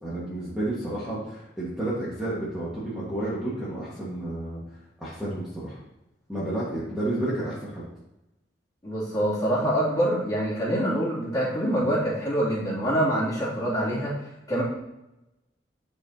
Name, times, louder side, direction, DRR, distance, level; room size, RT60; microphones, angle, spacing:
voice 1, 0.0-4.6 5.0-5.8 6.3-7.9, right 1 dB, 5° right, -10 dB, 1.5 m, -31 dB
voice 2, 8.8-14.1 14.5-14.6, right 1 dB, 20° left, -9 dB, 2.6 m, -25 dB
10.5 x 4.6 x 2.8 m, 0.94 s
head